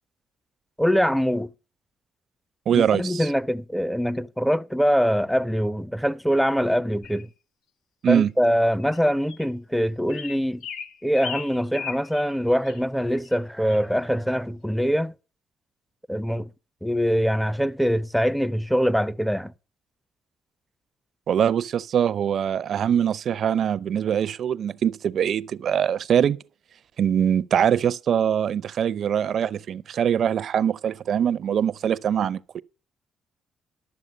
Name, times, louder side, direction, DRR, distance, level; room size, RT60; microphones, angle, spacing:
voice 1, 0.8-1.5 2.7-7.3 8.1-10.6 11.0-15.1 16.1-16.5 16.8-19.5, equal, ahead, 0.5 m, -23 dB
voice 2, 2.7-3.3 8.0-8.3 21.3-26.4 27.0-32.6, right 8 dB, 60° right, 0.5 m, -23 dB
sound 1, 7.0-7.2 8.1-8.2 8.8-9.0 9.3-9.5 10.1-12.3 12.7-12.8 13.2-13.4 13.7-13.9, left 7 dB, 80° left, 1.4 m, -37 dB
12.0 x 7.2 x 6.4 m
cardioid pair, 90°, 0 cm